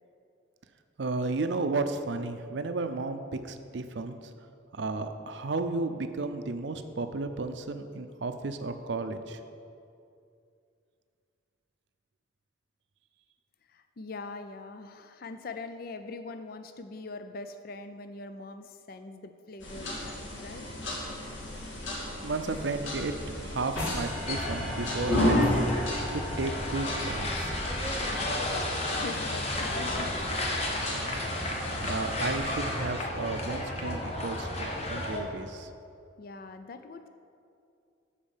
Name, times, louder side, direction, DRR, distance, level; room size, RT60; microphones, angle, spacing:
voice 1, 1.0-3.2 3.4-4.2 4.7-9.4 22.2-25.5 26.1-27.3 31.9-35.7, right 3 dB, 60° right, 8 dB, 0.5 m, -33 dB
voice 2, 13.7-20.7 27.9-30.3 36.2-37.1, left 3 dB, 45° left, 8 dB, 0.4 m, -42 dB
sound 1, 19.6-32.5, left 1 dB, 70° left, 2.1 m, -33 dB
sound 2, 23.8-29.0, left 1 dB, 90° left, 2.6 m, -40 dB
sound 3, 24.3-35.2, left 1 dB, 30° left, 1.1 m, -33 dB
12.5 x 4.4 x 7.3 m, 2.5 s
head